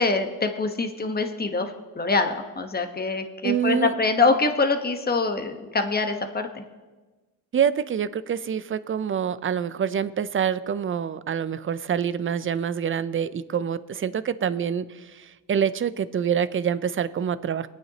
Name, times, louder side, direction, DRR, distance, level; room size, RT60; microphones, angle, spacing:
voice 1, 0.0-6.6, left 3 dB, 25° left, 6 dB, 1.2 m, -24 dB
voice 2, 3.4-3.9 7.5-17.7, right 8 dB, 30° right, 15 dB, 0.5 m, -26 dB
23.5 x 9.1 x 2.9 m, 1.2 s
cardioid pair, 80°, 39 cm